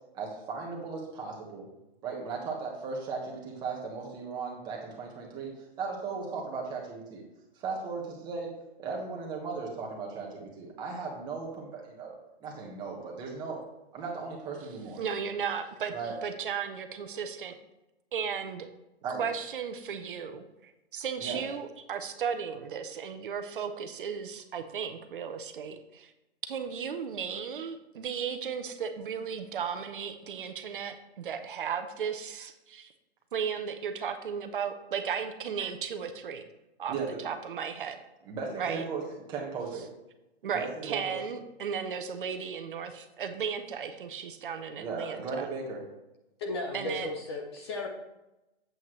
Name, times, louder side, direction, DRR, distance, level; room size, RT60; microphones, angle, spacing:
voice 1, 0.1-1.7 2.0-5.5 5.8-7.2 7.5-8.5 8.8-12.1 12.4-13.6 13.9-15.0 15.9-16.1 19.0-19.2 21.2-21.4 36.9-37.2 38.2-39.0 39.3-39.8 40.4-41.2 44.8-45.8, right 4 dB, 15° right, -2 dB, 1.4 m, -36 dB
voice 2, 15.0-15.9 16.2-17.6 18.1-18.7 19.1-26.1 26.5-32.9 33.3-36.4 36.8-38.0 38.6-38.8 40.4-45.5 46.7-47.1, right 7 dB, 55° right, 8 dB, 0.9 m, -35 dB
voice 3, 46.4-47.9, left 2 dB, 25° left, 3 dB, 0.7 m, -35 dB
8.3 x 8.0 x 3.2 m, 0.95 s
hypercardioid pair, 165°, 33 cm